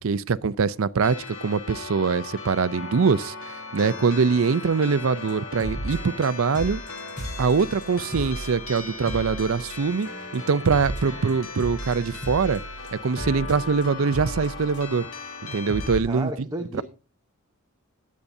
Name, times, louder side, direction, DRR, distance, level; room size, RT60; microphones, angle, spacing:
voice 1, 0.0-6.8 7.4-12.6 12.9-15.1 15.5-16.3 16.7-16.8, right 5 dB, 70° right, 0.5 m, -23 dB
sound 1, 1.0-16.0, left 4 dB, 75° left, 2.1 m, -38 dB
sound 2, 5.3-5.4 5.6-6.3 6.5-10.0 10.3-15.1 15.4-15.5 15.7-16.0, right 1 dB, 40° left, 4.2 m, -35 dB
voice 2, 16.1-16.8, right 1 dB, 15° right, 0.8 m, -32 dB
20.5 x 8.5 x 2.7 m
head